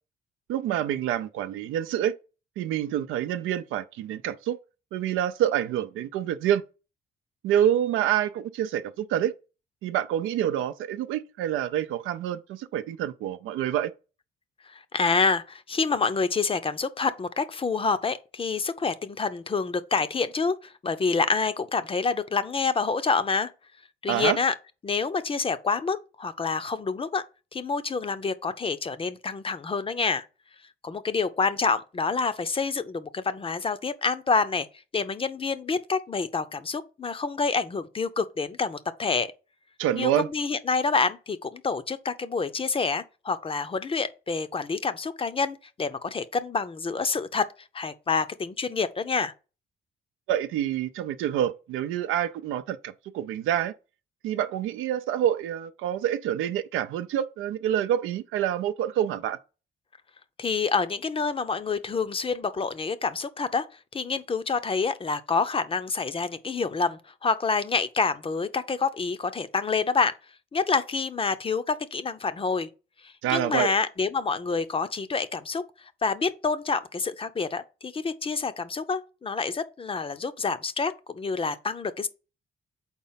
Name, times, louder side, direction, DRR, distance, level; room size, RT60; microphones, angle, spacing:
voice 1, 0.5-2.1 2.6-4.6 4.9-6.6 7.4-9.3 9.8-13.9 24.1-24.4 39.8-40.3 50.3-53.7 54.2-59.4 73.2-73.7, right 11 dB, 90° right, 0.5 m, -27 dB
voice 2, 14.7-23.5 24.0-24.5 24.8-27.2 27.5-30.3 30.8-34.7 34.9-39.3 39.9-47.5 47.7-49.3 60.4-63.7 63.9-70.2 70.5-72.7 73.0-82.1, left 4 dB, 25° left, 0.6 m, -27 dB
4.4 x 4.1 x 5.6 m
cardioid pair, 90°, 20 cm